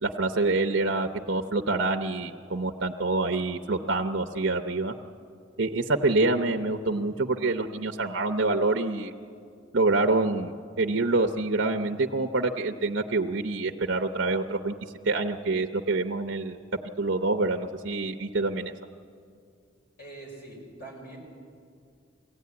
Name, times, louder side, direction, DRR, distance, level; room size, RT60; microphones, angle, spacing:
voice 1, 0.0-4.9 5.6-9.1 9.7-14.7 15.0-16.6 17.0-18.7, right 3 dB, 60° right, 3 dB, 0.7 m, -26 dB
voice 2, 20.0-21.2, right 2 dB, 45° left, -1 dB, 6.0 m, -43 dB
22.5 x 16.0 x 9.5 m, 2.3 s
head